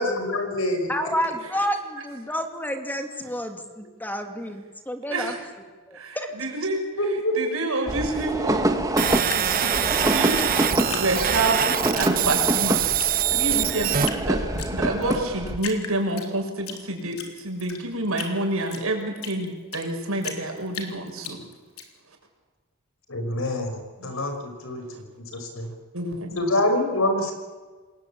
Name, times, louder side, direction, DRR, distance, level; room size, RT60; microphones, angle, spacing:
voice 1, 0.0-0.9 7.0-7.6 23.1-25.1 25.6-25.7 26.4-27.3, left 1 dB, 75° left, 6 dB, 5.8 m, -25 dB
voice 2, 0.9-5.4 5.9-6.3, equal, 10° left, 5 dB, 2.5 m, -30 dB
voice 3, 5.9-6.8 7.3-8.6 9.3-10.4 10.9-11.6 11.9-12.9 13.3-21.4 24.0-24.1 25.9-26.3, right 2 dB, 80° right, 3 dB, 6.6 m, -28 dB
sound 1, 7.9-15.6, right 1 dB, 15° right, 1.8 m, -26 dB
sound 2, 9.0-14.1, right 9 dB, 40° right, 1.1 m, -24 dB
Drip, 9.2-11.6 11.9-12.6 13.0-13.1 13.4-14.2 14.6-15.2 15.6-16.8 17.1-19.9 20.2-21.8, left 6 dB, 90° left, 3.9 m, -36 dB
28.0 x 21.0 x 8.7 m, 1.4 s
head